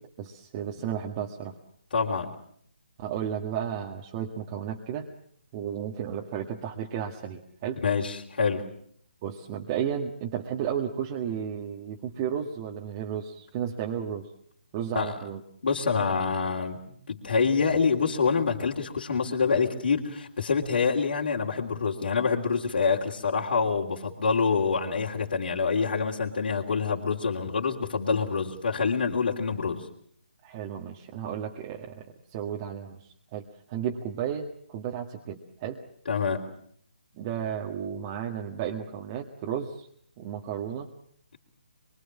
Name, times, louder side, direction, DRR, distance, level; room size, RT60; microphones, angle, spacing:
voice 1, 0.2-1.6 3.0-5.1 5.5-7.8 9.2-14.3 14.7-15.4 30.4-35.8 37.1-39.9 40.2-40.9, right 9 dB, 25° right, 0 dB, 1.8 m, -33 dB
voice 2, 1.9-2.3 7.8-8.7 14.9-15.1 15.6-29.9 36.1-36.5, left 5 dB, 60° left, -2 dB, 3.3 m, -26 dB
25.5 x 23.0 x 7.4 m, 0.65 s
figure-of-eight pair, 150°, 6 cm